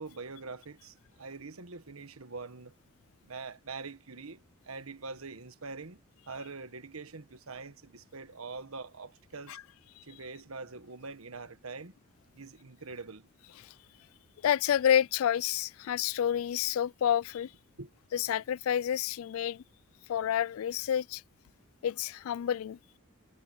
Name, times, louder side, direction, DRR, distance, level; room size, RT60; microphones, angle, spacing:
voice 1, 0.0-2.7 3.2-6.0 6.3-9.6 10.0-12.0 12.3-13.3 17.8-17.9, right 4 dB, 80° right, 1.4 m, -44 dB
voice 2, 14.4-17.5 18.1-19.6 20.1-21.2 21.8-22.8, left 9 dB, 75° left, 0.3 m, -29 dB
head